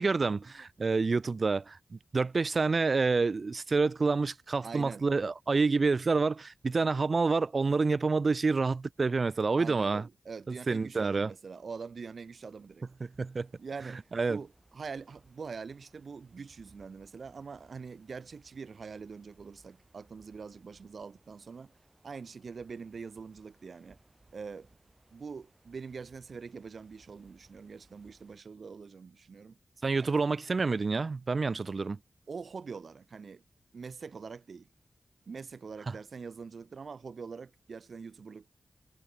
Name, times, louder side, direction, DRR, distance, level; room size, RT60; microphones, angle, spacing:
voice 1, 0.0-10.1 10.5-11.3 13.0-13.5 14.1-14.4 29.8-32.0, right 4 dB, 45° right, 0.3 m, -28 dB
voice 2, 4.6-5.0 9.6-12.9 13.6-21.7 22.0-24.0 24.3-24.7 25.1-29.6 32.3-33.4 33.7-34.7 35.3-38.5, right 5 dB, 65° right, 1.0 m, -44 dB
sound 1, 12.2-28.4, right 2 dB, 25° right, 3.1 m, -65 dB
wide cardioid pair, 125°, 0 cm